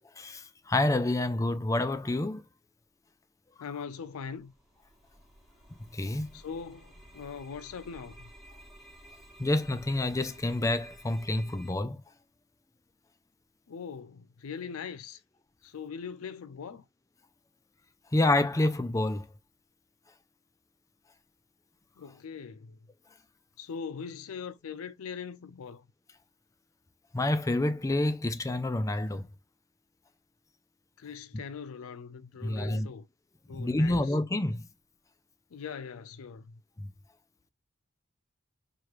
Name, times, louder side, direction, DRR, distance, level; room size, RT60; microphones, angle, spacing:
voice 1, 0.2-2.4 5.9-6.3 9.4-12.0 18.1-19.3 27.1-29.3 32.4-32.9 33.5-34.6 36.8-36.9, left 2 dB, 15° left, 0.4 m, -28 dB
voice 2, 3.6-4.5 6.3-8.3 13.7-15.2 15.6-16.8 22.0-22.8 23.6-25.8 31.0-33.1 33.5-34.1 35.5-36.6, left 6 dB, 75° left, 0.4 m, -41 dB
sound 1, 4.0-11.7, right 1 dB, ahead, 1.1 m, -54 dB
4.8 x 2.4 x 3.0 m
head